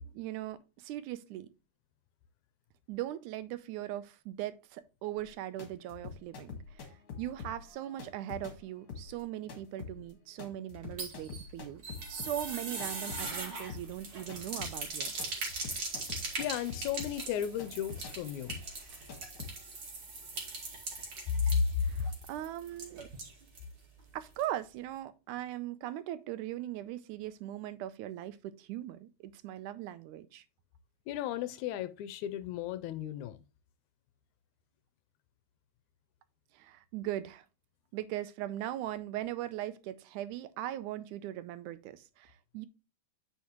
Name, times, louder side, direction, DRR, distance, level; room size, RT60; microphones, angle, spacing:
voice 1, 0.0-1.5 2.9-11.8 12.1-15.1 21.8-23.1 24.1-30.5 36.5-37.5 37.9-42.7, right 13 dB, 85° right, 2.1 m, -40 dB
sound 1, 5.2-13.4 13.7-19.5, left 5 dB, 50° left, 2.3 m, -46 dB
sound 2, 10.7-23.7 24.0-24.1 24.4-24.5, right 3 dB, 45° right, 2.9 m, -41 dB
voice 2, 16.4-18.6 21.3-21.7 31.1-33.4, left 8 dB, 80° left, 1.9 m, -33 dB
9.4 x 5.3 x 3.0 m
omnidirectional pair, 3.4 m